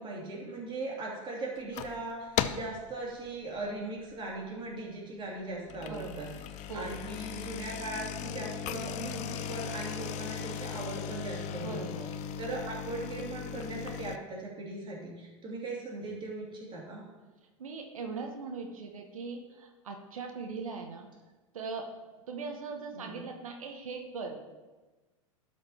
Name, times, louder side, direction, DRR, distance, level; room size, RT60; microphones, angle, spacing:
voice 1, 0.0-6.3 6.7-11.8 12.4-17.1 22.9-23.2, right 2 dB, 30° right, -3 dB, 2.9 m, -39 dB
sound 1, 1.6-2.0 2.4-2.8 3.3-3.6 4.1-4.2 4.5-4.6 5.5-14.2, left 9 dB, 40° left, 0.6 m, -37 dB
voice 2, 5.7-6.4 6.7-7.0 11.5-12.1 17.6-21.1 21.5-21.9 22.3-24.4, right 4 dB, 85° right, 3 dB, 1.1 m, -40 dB
12.0 x 4.9 x 4.3 m, 1.2 s
hypercardioid pair, 95°, 17 cm